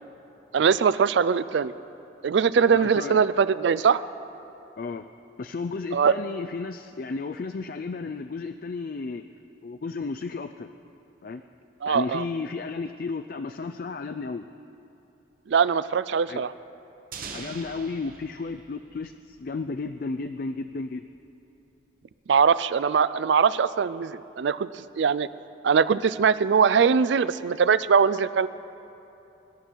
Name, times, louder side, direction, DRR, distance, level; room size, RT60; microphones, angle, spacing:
voice 1, 0.5-1.7 2.2-4.0 5.9-6.2 11.8-12.2 15.5-16.5 22.3-24.7 25.0-25.3 25.6-28.5, right 6 dB, 65° right, 16 dB, 0.4 m, -21 dB
voice 2, 2.7-3.2 4.8-5.1 5.4-9.2 9.6-10.7 11.2-11.4 11.9-14.5 16.3-16.5 17.3-21.0, left 4 dB, 50° left, 8 dB, 0.4 m, -33 dB
sound 1, 17.1-19.9, right 5 dB, 45° right, 1.0 m, -43 dB
24.5 x 11.0 x 4.6 m, 2.9 s
head